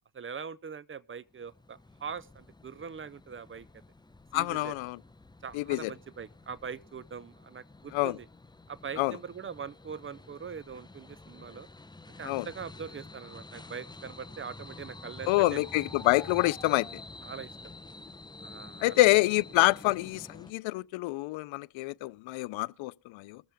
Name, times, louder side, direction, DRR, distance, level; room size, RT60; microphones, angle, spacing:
voice 1, 0.1-3.7 4.3-4.7 5.4-8.3 8.7-11.7 12.2-15.7 17.2-17.5 18.4-19.1, right 6 dB, 30° right, 0.5 m, -42 dB
sound 1, 1.3-20.5, left 2 dB, 10° left, 0.7 m, -49 dB
voice 2, 4.3-5.0 5.5-5.9 7.9-8.2 9.0-9.1 12.2-12.5 15.3-16.9 18.8-23.4, left 20 dB, 85° left, 0.5 m, -27 dB
22.0 x 7.4 x 3.4 m
cardioid pair, 70°, 46 cm